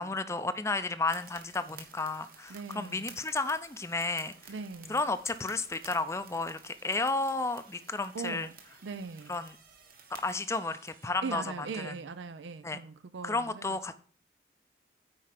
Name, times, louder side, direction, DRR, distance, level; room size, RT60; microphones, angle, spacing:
voice 1, 0.0-4.5 4.9-8.5 9.3-9.6 10.1-11.4 11.8-12.0 12.6-12.8 13.2-13.9, left 3 dB, 15° left, 0.5 m, -32 dB
sound 1, 1.0-11.1, right 6 dB, 50° right, 1.5 m, -53 dB
voice 2, 2.5-3.2 4.5-5.0 8.1-8.6 8.8-9.4 11.2-13.9, right 4 dB, 80° right, 0.5 m, -40 dB
9.5 x 4.6 x 5.8 m
head